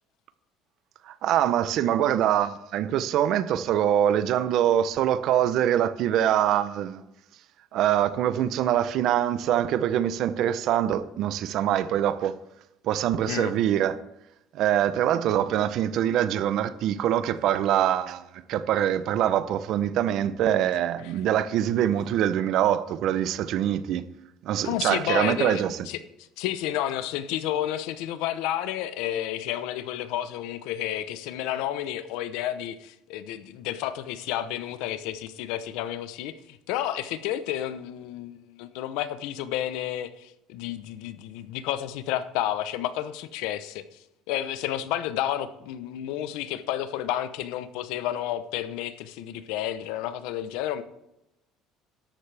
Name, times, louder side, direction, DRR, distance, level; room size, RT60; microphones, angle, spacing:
voice 1, 1.1-7.0 7.7-12.3 12.8-14.0 14.5-24.0 24.4-25.8, right 11 dB, 55° right, 0.7 m, -24 dB
voice 2, 13.2-13.5 24.6-26.0 26.4-44.0 44.3-50.8, left 12 dB, 80° left, 0.8 m, -31 dB
13.5 x 11.5 x 3.4 m
cardioid pair, 155°, 0 cm